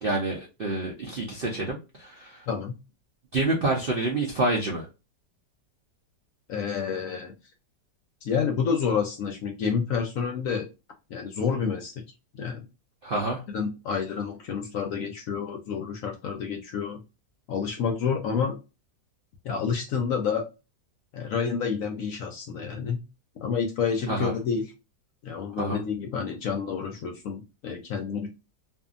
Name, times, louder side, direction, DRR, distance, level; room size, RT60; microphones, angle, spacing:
voice 1, 0.0-2.4 3.3-4.9 13.0-13.4 24.1-24.3 25.6-25.8, right 2 dB, 80° right, -1 dB, 0.5 m, -28 dB
voice 2, 2.5-2.8 6.5-7.3 8.2-10.7 11.1-12.0 12.4-12.7 13.5-17.0 17.5-18.6 19.4-20.4 21.1-23.0 23.4-24.7 25.2-28.3, left 6 dB, 70° left, 4 dB, 0.8 m, -29 dB
2.6 x 2.5 x 2.4 m, 0.28 s
omnidirectional pair, 1.8 m